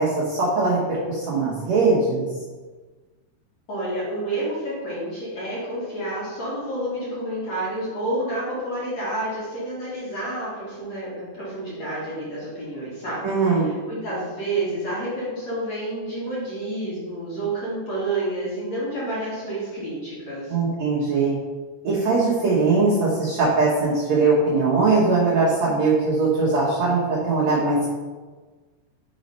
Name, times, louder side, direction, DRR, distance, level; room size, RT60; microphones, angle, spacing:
voice 1, 0.0-2.2 13.2-13.7 20.5-21.4 21.8-27.9, right 3 dB, 85° right, -7 dB, 1.5 m, -21 dB
voice 2, 3.7-20.5, right 1 dB, 50° left, -9 dB, 2.3 m, -29 dB
6.7 x 4.3 x 5.4 m, 1.4 s
omnidirectional pair, 5.2 m